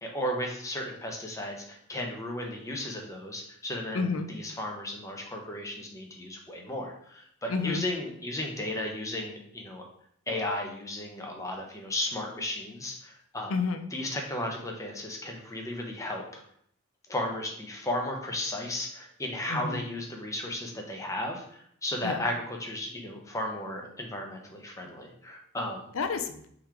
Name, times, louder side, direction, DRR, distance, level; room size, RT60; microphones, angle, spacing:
voice 1, 0.0-9.8 10.3-13.5 13.9-16.4 17.1-25.8, left 1 dB, 15° left, 1 dB, 0.8 m, -34 dB
voice 2, 3.9-4.3 7.5-7.8 13.5-13.9 19.5-19.8 22.0-22.2 25.9-26.5, left 4 dB, 85° left, 8 dB, 0.5 m, -30 dB
3.8 x 3.1 x 4.5 m, 0.66 s
head